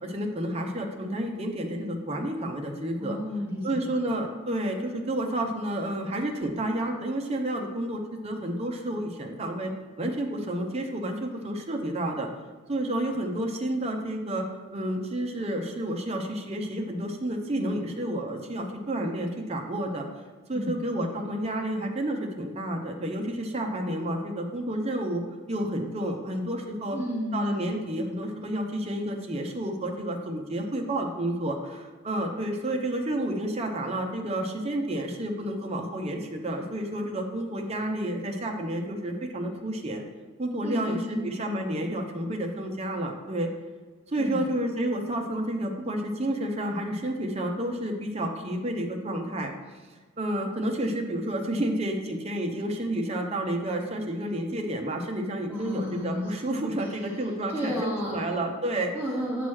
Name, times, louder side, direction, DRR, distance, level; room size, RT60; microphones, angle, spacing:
voice 1, 0.0-3.2 3.6-9.7 10.0-12.3 12.7-14.5 14.7-20.1 20.5-25.2 25.5-27.0 27.3-40.0 40.4-43.5 44.1-49.5 50.2-58.9, right 1 dB, 30° right, 2 dB, 0.8 m, -30 dB
voice 2, 3.0-3.8 20.5-21.1 26.9-27.6 40.6-41.2 44.2-44.4 55.5-56.3 57.5-58.3 58.9-59.5, equal, 10° right, -6 dB, 1.0 m, -32 dB
8.4 x 3.0 x 6.3 m, 1.4 s
head